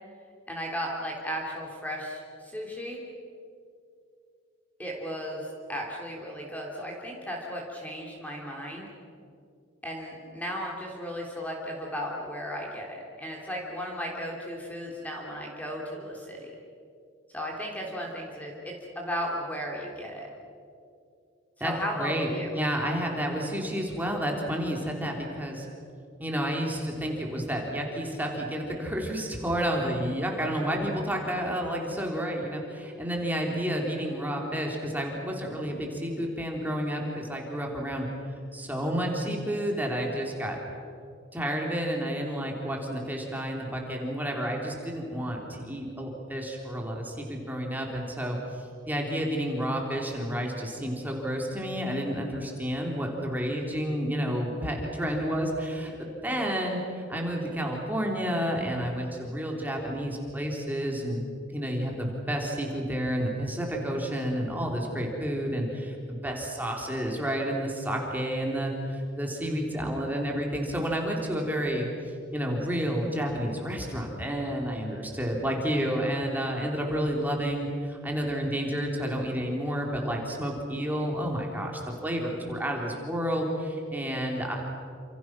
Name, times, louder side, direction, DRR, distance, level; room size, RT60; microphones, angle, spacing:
voice 1, 0.5-3.0 4.8-8.9 9.8-16.6 17.3-20.3 21.6-22.5, equal, 10° left, -1 dB, 3.2 m, -35 dB
voice 2, 22.0-25.7 26.2-38.1 38.5-40.6 41.3-61.2 61.5-71.9 72.3-84.5, equal, 10° right, 0 dB, 3.4 m, -30 dB
29.0 x 27.5 x 6.1 m, 2.5 s
head